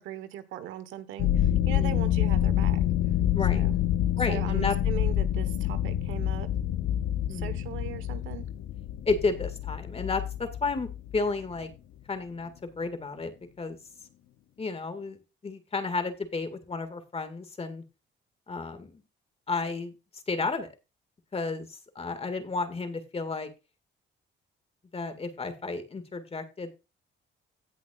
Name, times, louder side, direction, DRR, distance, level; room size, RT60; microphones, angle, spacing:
voice 1, 0.0-2.8 3.5-3.7 4.3-6.5 7.3-8.4, right 11 dB, 90° right, 12 dB, 1.2 m, -39 dB
sound 1, 1.2-11.3, left 11 dB, 80° left, 0.8 m, -27 dB
voice 2, 1.8-2.1 3.3-3.6 4.2-4.8 7.3-7.6 9.1-11.7 12.1-13.8 14.6-17.8 18.5-19.0 19.5-19.9 20.3-20.7 21.3-23.5 24.9-26.7, left 4 dB, 30° left, 9 dB, 1.9 m, -32 dB
17.5 x 5.9 x 2.4 m, 0.28 s
cardioid pair, 90°, 20 cm